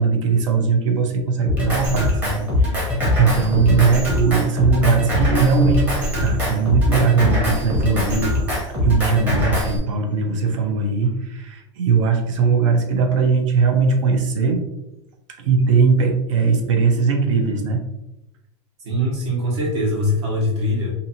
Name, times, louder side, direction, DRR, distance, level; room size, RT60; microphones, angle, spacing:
voice 1, 0.0-5.9 6.2-8.5 8.8-14.6 15.4-17.8, right 5 dB, 80° right, 4 dB, 0.7 m, -19 dB
Drum kit, 1.4-9.8, left 1 dB, 10° right, 0.7 m, -22 dB
voice 2, 18.8-20.9, left 1 dB, 60° right, -3 dB, 1.3 m, -22 dB
2.8 x 2.6 x 2.7 m, 0.91 s
supercardioid pair, 175°, 16 cm